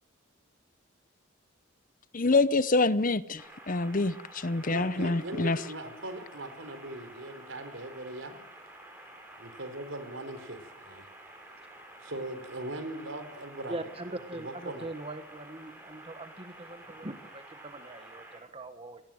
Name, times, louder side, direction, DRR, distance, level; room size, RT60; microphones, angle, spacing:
voice 1, 2.1-5.6, left 3 dB, 40° left, 0.8 m, -26 dB
sound 1, 3.4-18.4, right 1 dB, 10° right, 6.2 m, -50 dB
voice 2, 4.7-8.4 9.3-11.1 12.0-14.9, right 1 dB, 75° right, 4.3 m, -40 dB
voice 3, 13.7-19.0, right 2 dB, 30° right, 1.3 m, -41 dB
27.5 x 18.5 x 7.8 m
head